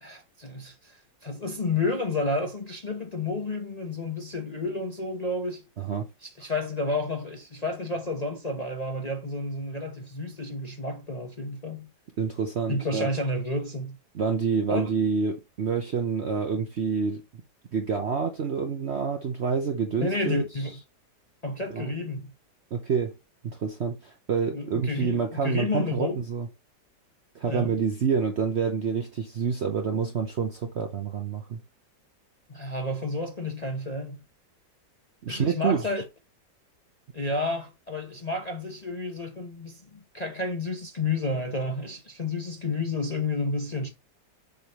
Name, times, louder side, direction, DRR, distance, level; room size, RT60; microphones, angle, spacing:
voice 1, 0.0-5.7 6.2-11.9 12.7-14.0 14.7-14.9 20.0-20.7 21.4-22.3 24.5-26.2 27.5-27.8 32.5-34.2 35.3-36.1 37.1-43.9, left 2 dB, 35° left, 0.7 m, -31 dB
voice 2, 5.8-6.1 12.2-13.1 14.1-17.2 17.7-20.4 21.7-21.9 22.7-23.1 23.4-26.5 27.3-31.6 35.2-35.8, right 6 dB, 55° right, 0.8 m, -27 dB
7.0 x 5.0 x 3.0 m
omnidirectional pair, 1.9 m